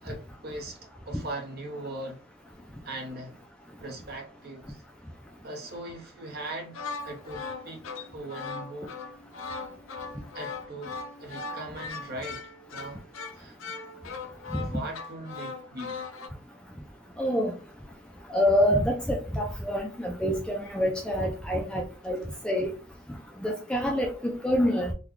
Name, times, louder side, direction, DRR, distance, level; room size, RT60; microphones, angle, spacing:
voice 1, 0.0-2.2 2.8-3.4 3.8-4.8 5.4-8.9 10.3-13.0 13.3-13.6 14.6-16.0, right 1 dB, 45° right, 0.9 m, -40 dB
sound 1, 6.6-16.3, left 4 dB, 70° left, 0.5 m, -39 dB
voice 2, 17.2-17.5 18.3-22.7 23.4-24.9, equal, 5° left, 0.4 m, -26 dB
3.7 x 2.3 x 3.1 m
head